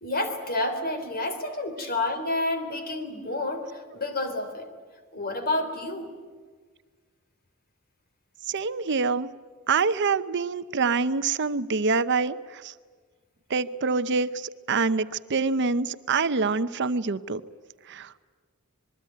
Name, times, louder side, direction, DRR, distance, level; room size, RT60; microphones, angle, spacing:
voice 1, 0.0-4.7 5.1-6.1, left 2 dB, 45° left, 7 dB, 3.6 m, -29 dB
voice 2, 8.5-9.3 9.7-12.7 13.5-17.4 17.9-18.1, right 4 dB, 55° right, 13 dB, 0.7 m, -26 dB
26.5 x 21.5 x 9.3 m, 1.5 s
head